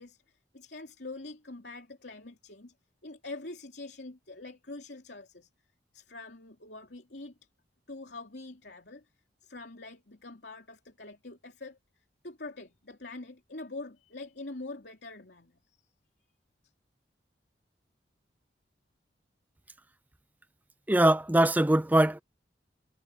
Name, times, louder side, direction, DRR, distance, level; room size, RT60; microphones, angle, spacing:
voice 1, 0.0-2.7 3.0-5.5 5.9-7.3 7.9-9.1 9.4-11.8 12.2-15.8, left 2 dB, 70° left, 3.1 m, -44 dB
voice 2, 20.9-22.2, right 1 dB, 10° right, 0.5 m, -22 dB
head